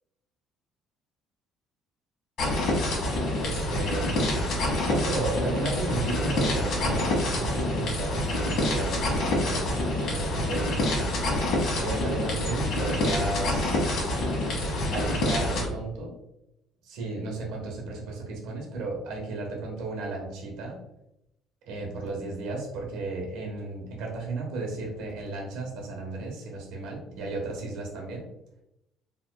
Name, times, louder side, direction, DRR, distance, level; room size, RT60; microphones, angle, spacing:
sound 1, 2.4-15.6, left 1 dB, 50° left, 1.3 m, -27 dB
voice 1, 3.4-4.3 4.8-10.7 11.8-13.8 14.9-16.1 16.9-20.8 21.7-28.2, right 2 dB, 85° right, 0 dB, 1.3 m, -34 dB
4.5 x 3.5 x 2.3 m, 0.84 s
cardioid pair, 165°, 0 cm